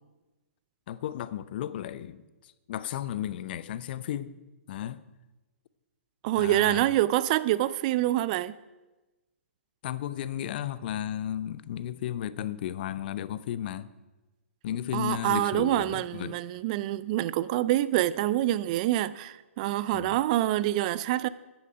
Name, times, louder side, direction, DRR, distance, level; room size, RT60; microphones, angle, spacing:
voice 1, 0.9-4.3 4.7-5.0 6.4-6.9 9.8-13.9 14.6-16.4 19.9-20.2, left 11 dB, 45° left, 0.6 m, -34 dB
voice 2, 6.2-8.5 14.9-21.3, right 14 dB, 35° right, 0.4 m, -26 dB
13.0 x 10.0 x 5.1 m
figure-of-eight pair, 130°, 7 cm